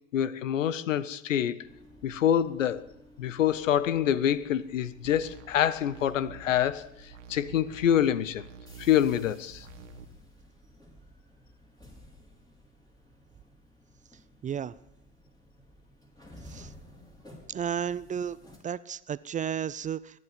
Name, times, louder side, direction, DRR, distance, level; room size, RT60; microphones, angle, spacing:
voice 1, 0.1-1.6 2.0-2.8 3.2-6.9 7.3-8.5 8.8-9.7, left 10 dB, 85° left, 0.8 m, -26 dB
sound 1, 1.6-18.6, left 1 dB, 10° left, 5.1 m, -54 dB
sound 2, 5.0-10.0, right 6 dB, 80° right, 1.4 m, -49 dB
voice 2, 14.4-14.7 16.5-16.7 17.5-18.4 18.6-20.2, right 8 dB, 20° right, 0.4 m, -33 dB
21.5 x 9.6 x 5.3 m
hypercardioid pair, 75°, 37 cm